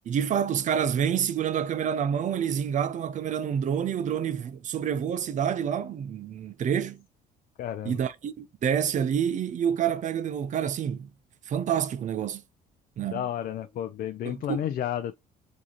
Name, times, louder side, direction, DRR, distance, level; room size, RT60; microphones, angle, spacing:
voice 1, 0.1-7.0 7.8-11.1 11.5-12.4 13.0-13.3 14.2-14.7, right 8 dB, 45° right, 0.6 m, -28 dB
voice 2, 7.6-8.0 13.1-15.1, left 10 dB, 55° left, 0.4 m, -31 dB
4.8 x 2.8 x 3.0 m
cardioid pair, 110°, 17 cm